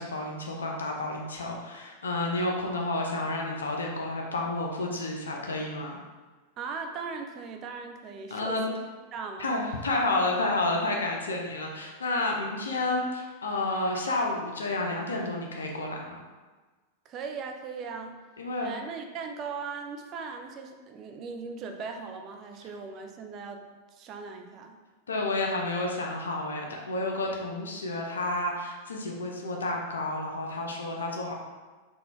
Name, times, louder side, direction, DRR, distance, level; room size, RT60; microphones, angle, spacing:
voice 1, 0.0-6.0 8.3-8.6 9.4-16.2 18.4-18.7 25.1-31.3, left 2 dB, 70° left, 0 dB, 0.5 m, -30 dB
voice 2, 6.6-8.8 9.1-9.5 17.1-18.2 18.6-24.8, right 5 dB, 35° right, 4 dB, 0.4 m, -39 dB
3.9 x 2.2 x 3.0 m, 1.3 s
figure-of-eight pair, 90°, 0 cm